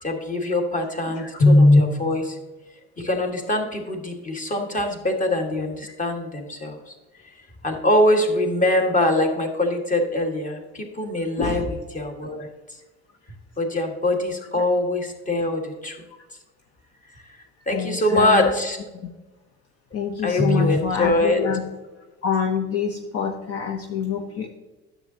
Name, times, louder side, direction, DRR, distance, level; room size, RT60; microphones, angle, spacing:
voice 1, 0.0-2.4 3.0-6.9 7.2-7.3 7.6-12.5 13.6-16.0 17.7-18.8 20.2-21.4, left 1 dB, 25° left, 3 dB, 1.7 m, -22 dB
voice 2, 11.4-11.7 17.7-18.5 19.9-21.6 22.2-24.5, left 7 dB, 50° left, 4 dB, 0.9 m, -26 dB
9.9 x 7.3 x 2.8 m, 1.1 s
supercardioid pair, 90°, 31 cm